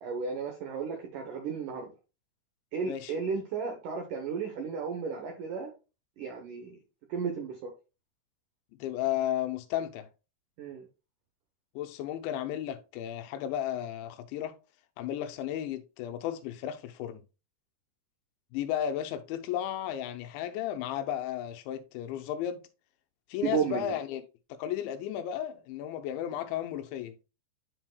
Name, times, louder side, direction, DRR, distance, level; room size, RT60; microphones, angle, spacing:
voice 1, 0.0-1.9 2.7-5.7 6.2-6.8 7.1-7.7 10.6-10.9 23.4-23.9, right 6 dB, 80° right, 1.8 m, -34 dB
voice 2, 8.8-10.1 11.8-14.6 15.0-17.2 18.5-22.7 23.3-24.2 24.5-27.2, left 11 dB, 85° left, 3.0 m, -34 dB
10.5 x 4.4 x 2.2 m
omnidirectional pair, 5.1 m